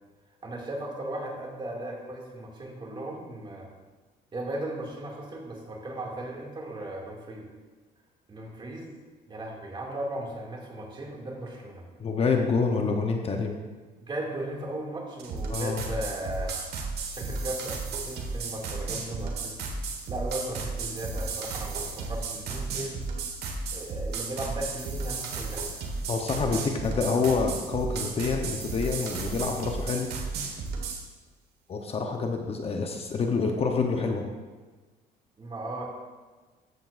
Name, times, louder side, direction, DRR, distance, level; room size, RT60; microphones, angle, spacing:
voice 1, 0.4-3.7 4.3-7.5 8.3-8.9 9.3-11.9 14.0-16.6 17.1-19.5 20.1-23.1 23.7-25.7 26.5-26.8 35.4-35.8, right 1 dB, 30° right, -2 dB, 2.3 m, -36 dB
voice 2, 12.0-13.6 15.5-15.8 26.1-30.1 30.4-30.5 31.7-34.2, left 4 dB, 35° left, 3 dB, 0.9 m, -27 dB
sound 1, 15.2-31.0, right 4 dB, 70° right, 1.5 m, -34 dB
13.5 x 7.8 x 2.5 m, 1.3 s
cardioid pair, 110°, 17 cm